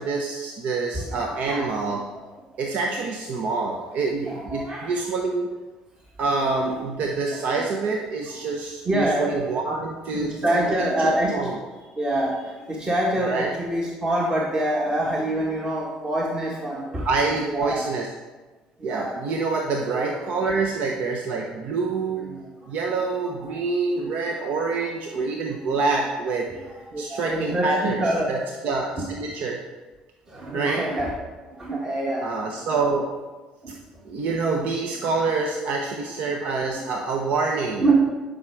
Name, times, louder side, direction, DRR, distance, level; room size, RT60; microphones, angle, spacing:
voice 1, 0.0-2.0 2.6-5.5 6.2-10.7 11.0-11.6 13.2-13.5 16.9-18.1 18.8-22.2 22.7-26.6 27.0-28.0 28.3-29.6 30.5-30.8 32.2-33.1 34.0-37.8, right 3 dB, 65° right, 1 dB, 0.9 m, -26 dB
voice 2, 0.9-1.9 4.2-5.1 6.4-6.8 7.3-7.4 8.9-9.4 9.7-9.8 10.1-11.5 12.0-12.4 12.7-17.0 17.5-17.9 18.8-19.1 19.9-20.4 22.2-22.4 23.0-23.5 23.9-24.1 25.1-25.9 26.7-28.3 28.9-29.0 30.3-31.2 31.6-32.2 33.6-33.7 36.7-36.8 37.8-38.0, right 1 dB, 30° right, -3 dB, 1.7 m, -26 dB
10.5 x 5.6 x 4.7 m, 1.3 s
supercardioid pair, 90°, 3 cm